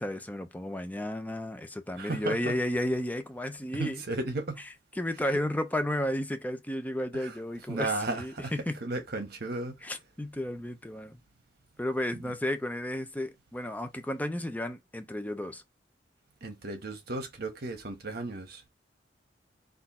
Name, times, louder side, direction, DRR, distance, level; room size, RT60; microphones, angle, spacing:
voice 1, 0.0-4.0 5.0-8.8 9.8-11.2 11.8-15.6, left 1 dB, 10° left, 0.7 m, -33 dB
voice 2, 1.9-2.6 3.8-4.6 5.3-5.4 7.1-7.3 7.7-8.5 8.8-9.8 12.1-12.3 16.4-18.7, right 2 dB, 60° right, 1.2 m, -34 dB
4.2 x 2.6 x 4.2 m
head